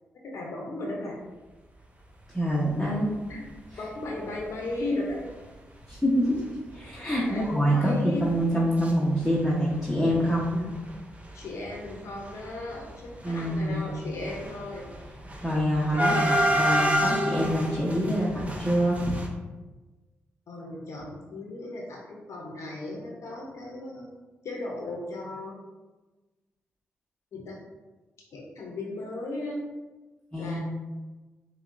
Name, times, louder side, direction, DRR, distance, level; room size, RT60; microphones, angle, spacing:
voice 1, 0.3-1.2 3.3-3.4 3.8-5.2 7.3-8.4 11.3-14.9 15.9-16.3 20.5-24.1 24.4-25.6 27.3-27.5 28.3-29.6 30.4-30.6, left 2 dB, 70° left, -2 dB, 0.8 m, -36 dB
voice 2, 2.3-3.1 5.9-6.4 6.7-10.6 13.2-13.8 15.4-19.2 30.3-30.6, equal, 5° left, -7 dB, 1.0 m, -25 dB
sound 1, 3.3-3.5 4.0-4.1 4.3-4.5 5.2-5.3 5.8-5.9 6.2-6.3 6.7-8.9 9.2-9.9 10.2-19.3, equal, 25° right, 0.8 m, -29 dB
5.7 x 2.3 x 2.6 m, 1.2 s
supercardioid pair, 45°, 5 cm